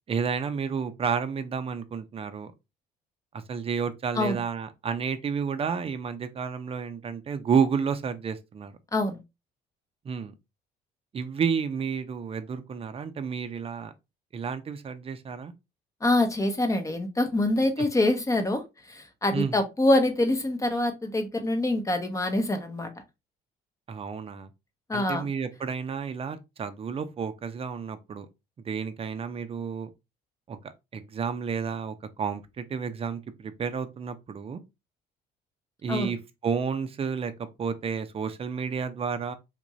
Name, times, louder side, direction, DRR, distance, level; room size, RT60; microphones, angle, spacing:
voice 1, 0.1-2.5 3.3-8.7 10.0-10.3 11.1-13.9 14.3-15.5 17.8-17.9 19.3-19.6 23.9-24.5 24.9-28.3 28.7-29.9 30.5-30.6 30.9-34.6 35.8-36.2 36.4-39.3, right 6 dB, 35° right, 0.6 m, -31 dB
voice 2, 16.0-22.9 24.9-25.2 35.9-36.1, left 1 dB, 20° left, 0.9 m, -25 dB
3.6 x 2.6 x 3.1 m
cardioid pair, 110°, 17 cm